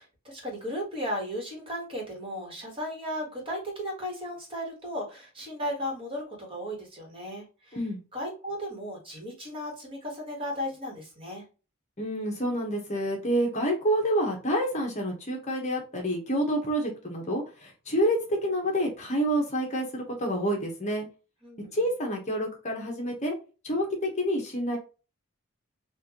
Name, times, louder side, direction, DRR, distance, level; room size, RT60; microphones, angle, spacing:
voice 1, 0.0-7.8 8.1-11.5 21.4-21.8, equal, 25° right, 0 dB, 1.5 m, -35 dB
voice 2, 12.0-21.1 21.6-23.3 23.6-24.8, equal, 35° left, 1 dB, 1.1 m, -28 dB
4.3 x 2.5 x 2.9 m, 0.32 s
head